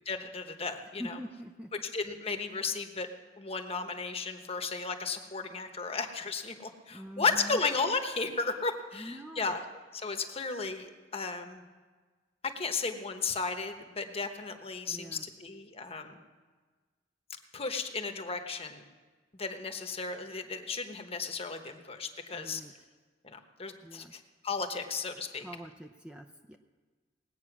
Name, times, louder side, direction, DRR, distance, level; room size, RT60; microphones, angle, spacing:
voice 1, 0.0-1.2 1.7-3.1 3.4-9.6 9.9-11.6 12.5-16.2 17.5-18.8 19.3-22.6 23.2-25.5, left 4 dB, 35° left, 6 dB, 1.1 m, -34 dB
voice 2, 1.0-1.7 6.9-7.6 8.9-9.6 14.9-15.2 22.3-22.7 23.8-24.1 25.4-26.6, equal, 5° right, 4 dB, 0.6 m, -44 dB
19.5 x 8.8 x 6.0 m, 1.4 s
head